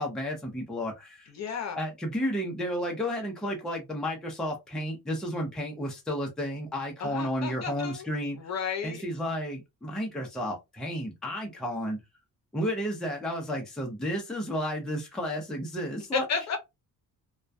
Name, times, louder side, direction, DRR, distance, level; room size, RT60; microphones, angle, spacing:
voice 1, 0.0-1.3 1.7-8.5 8.8-12.0 12.5-16.2, equal, ahead, 0.5 m, -32 dB
voice 2, 1.3-1.8 7.0-8.1 8.4-9.0 16.1-16.6, left 6 dB, 50° left, 0.7 m, -32 dB
2.2 x 2.2 x 2.5 m
wide cardioid pair, 165°, 35 cm